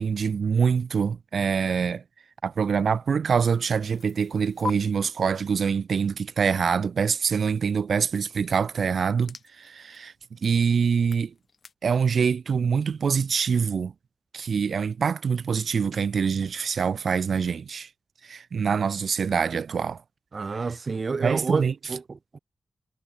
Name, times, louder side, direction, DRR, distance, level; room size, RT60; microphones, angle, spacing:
voice 1, 0.0-2.0 2.4-11.3 11.8-13.9 14.3-17.9 18.2-20.0 21.2-21.7, right 6 dB, 70° right, 1.6 m, -25 dB
sound 1, 3.3-4.7 8.1-11.7, left 5 dB, 55° left, 7.5 m, -43 dB
voice 2, 20.3-22.4, right 4 dB, 45° right, 3.1 m, -29 dB
wide cardioid pair, 95°, 0 cm